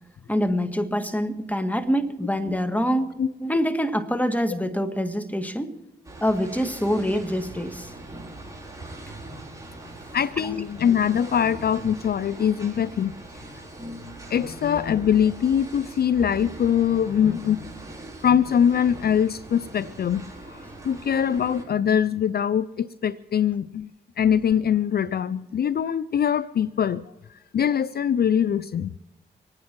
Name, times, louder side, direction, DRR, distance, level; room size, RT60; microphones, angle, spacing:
voice 1, 0.3-3.1 3.4-5.7 6.2-7.9, equal, 10° left, 7 dB, 1.8 m, -25 dB
sound 1, 6.0-21.6, right 2 dB, 15° right, 5.3 m, -41 dB
voice 2, 10.1-13.1 14.3-17.7 18.2-20.2 20.5-20.6 20.8-23.9 24.2-27.0 27.5-28.9, left 8 dB, 55° left, 18 dB, 0.4 m, -22 dB
25.5 x 9.7 x 4.6 m, 0.98 s
supercardioid pair, 45°, 19 cm